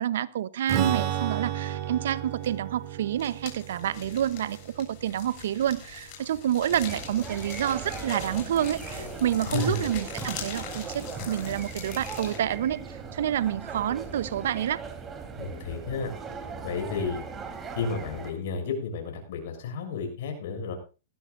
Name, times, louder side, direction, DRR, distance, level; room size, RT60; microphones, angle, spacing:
voice 1, 0.0-14.8, right 10 dB, 70° right, 0.9 m, -28 dB
Strum, 0.7-6.3, right 10 dB, 40° right, 2.9 m, -33 dB
sound 1, 2.4-2.7 3.0-12.4, left 8 dB, 45° left, 7.6 m, -42 dB
sound 2, 6.7-18.3, right 5 dB, 20° right, 3.7 m, -39 dB
voice 2, 9.4-9.9 15.4-16.1 16.6-17.2 17.8-20.8, left 4 dB, 65° left, 7.0 m, -32 dB
19.5 x 16.0 x 2.6 m
hypercardioid pair, 120°, 0 cm